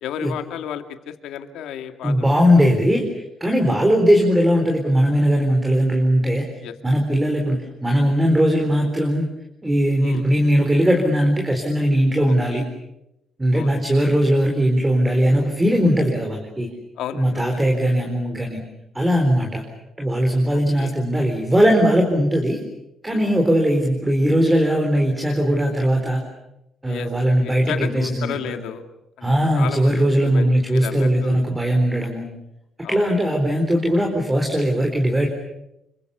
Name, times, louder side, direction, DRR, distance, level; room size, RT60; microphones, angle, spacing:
voice 1, 0.0-2.6 3.7-3.9 6.6-6.7 10.0-10.2 12.3-12.7 13.5-13.8 17.0-17.4 20.8-20.9 23.1-23.3 26.9-27.1 27.4-28.8 29.2-29.3 29.5-31.4 32.8-33.2, left 9 dB, 85° left, 7 dB, 2.3 m, -33 dB
voice 2, 2.0-6.4 6.8-9.3 9.6-12.6 13.4-16.7 17.1-18.6 18.9-19.6 20.0-22.6 23.0-26.2 26.8-28.6 29.2-32.3 32.9-35.3, equal, 15° right, 2 dB, 4.2 m, -19 dB
28.0 x 25.0 x 7.0 m, 0.86 s
cardioid pair, 115°, 0 cm